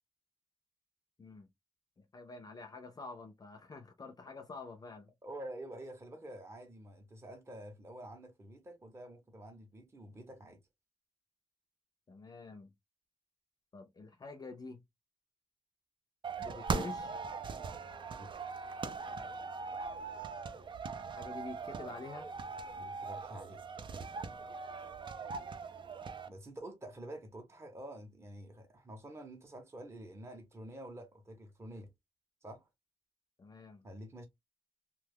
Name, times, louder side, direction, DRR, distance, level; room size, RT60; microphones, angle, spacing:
voice 1, 2.0-5.1 12.1-12.7 13.7-14.8 16.4-17.1 21.0-22.3 33.4-33.9, left 3 dB, 30° left, 0.5 m, -47 dB
voice 2, 5.2-10.6 18.1-18.3 22.8-23.6 26.3-31.9 32.4-32.7 33.8-34.3, right 1 dB, 20° right, 0.7 m, -48 dB
sound 1, 16.2-26.3, right 4 dB, 40° right, 0.4 m, -40 dB
3.0 x 2.2 x 3.3 m
wide cardioid pair, 175°, 12 cm